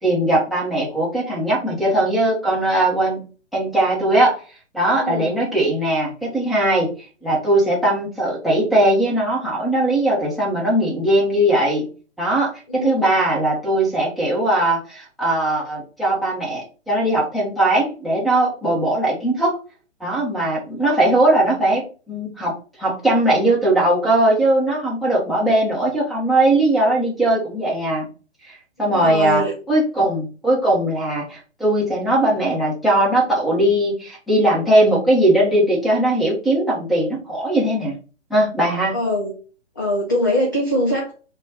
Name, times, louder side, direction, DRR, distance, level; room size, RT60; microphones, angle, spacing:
voice 1, 0.0-3.3 3.5-4.4 4.7-6.9 7.2-11.8 12.2-19.5 20.0-28.1 28.4-28.5 28.8-29.4 29.7-37.9 38.3-38.9, right 1 dB, ahead, -5 dB, 0.9 m, -19 dB
voice 2, 5.0-5.3 12.7-13.1 28.8-29.5 38.9-39.3 39.8-41.1, left 1 dB, 20° left, -2 dB, 0.4 m, -22 dB
4.0 x 2.3 x 3.7 m, 0.36 s
figure-of-eight pair, 125°, 35 cm